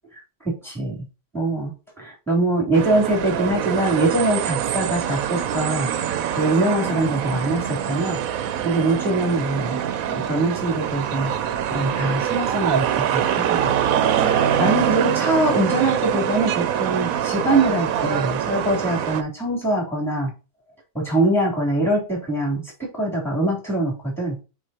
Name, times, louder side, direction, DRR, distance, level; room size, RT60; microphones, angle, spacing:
voice 1, 0.4-1.0 1.3-5.9 6.3-8.2 8.6-9.8 10.1-11.3 11.7-13.7 14.1-20.3 20.9-24.4, right 2 dB, ahead, -3 dB, 3.2 m, -23 dB
sound 1, 2.7-19.2, right 9 dB, 85° right, 1.1 m, -24 dB
7.8 x 4.4 x 2.8 m, 0.31 s
omnidirectional pair, 1.4 m